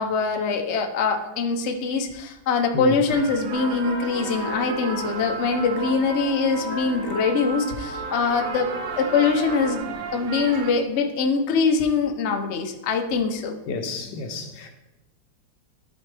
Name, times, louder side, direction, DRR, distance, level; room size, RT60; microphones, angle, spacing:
voice 1, 0.0-8.7 8.9-13.5, left 4 dB, 55° left, 0.8 m, -23 dB
sound 1, 3.1-10.7, right 6 dB, 65° right, 0.8 m, -36 dB
sound 2, 3.5-9.8, right 2 dB, 90° right, 2.7 m, -34 dB
voice 2, 13.7-14.7, left 4 dB, 75° left, 1.5 m, -31 dB
12.0 x 4.4 x 3.3 m
omnidirectional pair, 1.9 m